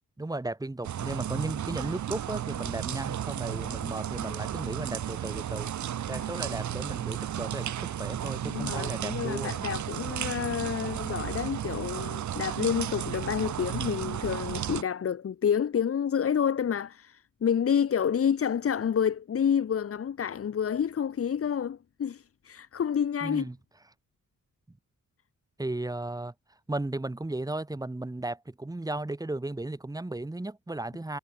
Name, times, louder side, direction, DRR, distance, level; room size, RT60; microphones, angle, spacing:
voice 1, 0.2-5.7 6.1-9.6 23.2-23.6 25.6-26.3 26.7-31.2, right 2 dB, 10° right, 3.5 m, -35 dB
sound 1, 0.8-14.8, right 10 dB, 75° right, 1.4 m, -34 dB
voice 2, 8.5-23.4, left 8 dB, 50° left, 1.3 m, -29 dB
wide cardioid pair, 140°, 29 cm